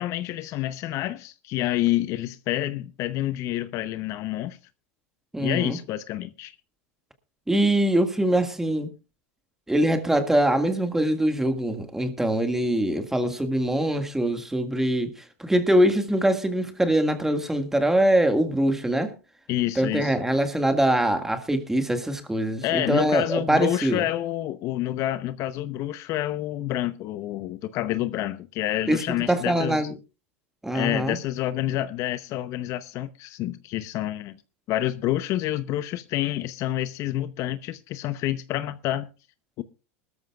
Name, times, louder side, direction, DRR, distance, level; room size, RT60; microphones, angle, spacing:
voice 1, 0.0-4.6 5.4-6.5 19.5-20.1 22.6-29.9 30.7-34.4 34.7-39.1 39.6-39.7, left 14 dB, 50° left, 0.8 m, -28 dB
voice 2, 5.3-5.8 7.5-8.9 9.7-19.1 19.8-24.1 28.9-29.9 30.6-31.2, right 1 dB, 5° right, 1.9 m, -23 dB
21.0 x 13.5 x 2.4 m
supercardioid pair, 115°, 7 cm